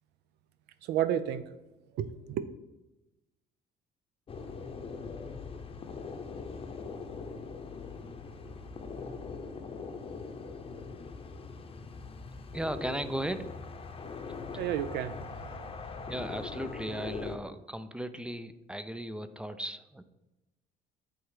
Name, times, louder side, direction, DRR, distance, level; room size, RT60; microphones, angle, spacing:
voice 1, 0.8-1.5 1.9-2.5 14.6-15.7, right 10 dB, 80° right, 13 dB, 0.5 m, -32 dB
sound 1, 4.3-17.4, left 4 dB, 35° left, 0.7 m, -41 dB
voice 2, 12.5-13.7 16.1-20.0, right 1 dB, 5° right, 11 dB, 0.4 m, -36 dB
8.1 x 3.1 x 4.8 m, 1.0 s
cardioid pair, 110°, 17 cm